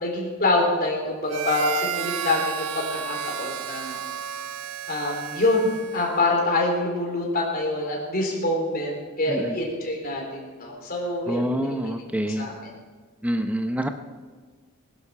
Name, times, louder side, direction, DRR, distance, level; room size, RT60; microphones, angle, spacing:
voice 1, 0.0-4.0 4.9-11.9 12.3-12.7, left 2 dB, 40° left, -1 dB, 3.7 m, -26 dB
Harmonica, 1.3-6.3, right 9 dB, 80° right, 0.6 m, -32 dB
voice 2, 11.3-12.5 13.2-13.9, equal, 5° right, 7 dB, 0.7 m, -26 dB
21.0 x 11.0 x 4.9 m, 1.4 s
head